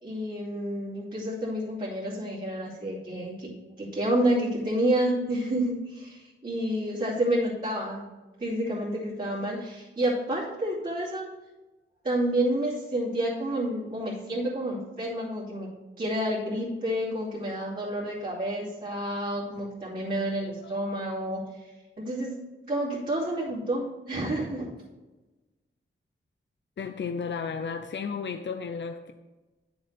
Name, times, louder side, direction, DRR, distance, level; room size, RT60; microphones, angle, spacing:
voice 1, 0.0-3.5 3.8-8.1 8.4-11.2 12.0-15.7 16.0-21.7 22.0-22.3 22.7-24.7, right 1 dB, 45° right, -11 dB, 2.8 m, -29 dB
voice 2, 26.8-29.1, left 5 dB, 60° left, 6 dB, 0.6 m, -33 dB
9.7 x 7.9 x 3.4 m, 1.1 s
wide cardioid pair, 110°, 21 cm